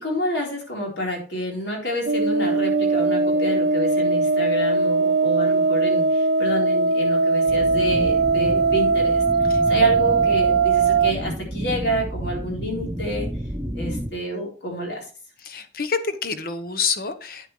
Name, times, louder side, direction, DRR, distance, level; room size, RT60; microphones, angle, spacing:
voice 1, 0.0-9.2 9.7-13.3 13.8-15.0, equal, 75° left, 0 dB, 4.0 m, -28 dB
sound 1, 2.1-11.1, right 3 dB, 70° right, 0.7 m, -20 dB
sound 2, 7.5-14.1, right 1 dB, 15° right, 1.1 m, -31 dB
voice 2, 15.4-17.5, left 5 dB, 55° left, 10 dB, 1.0 m, -27 dB
9.3 x 8.8 x 3.2 m, 0.37 s
head